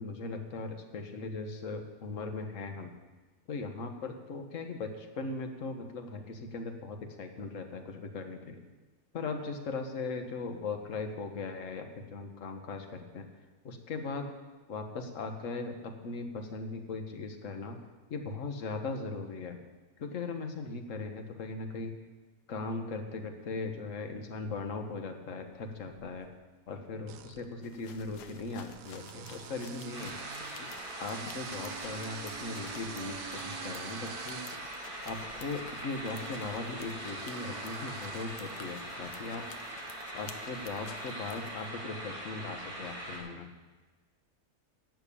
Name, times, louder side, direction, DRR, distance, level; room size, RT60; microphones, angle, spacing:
voice 1, 0.0-2.9 3.5-8.6 9.1-13.3 13.6-14.3 14.7-17.8 18.1-19.6 20.0-21.9 22.5-26.3 26.7-30.2 30.5-30.7 31.0-34.4 35.0-39.4 40.1-43.5, left 3 dB, 55° left, 5 dB, 1.5 m, -39 dB
sound 1, 25.7-26.3 27.0-39.3, right 9 dB, 80° right, 1.2 m, -48 dB
sound 2, 27.6-41.7, left 7 dB, 80° left, 1.4 m, -52 dB
sound 3, 29.9-43.2, right 1 dB, 40° right, 3.9 m, -42 dB
12.0 x 6.5 x 8.5 m, 1.2 s
omnidirectional pair, 1.7 m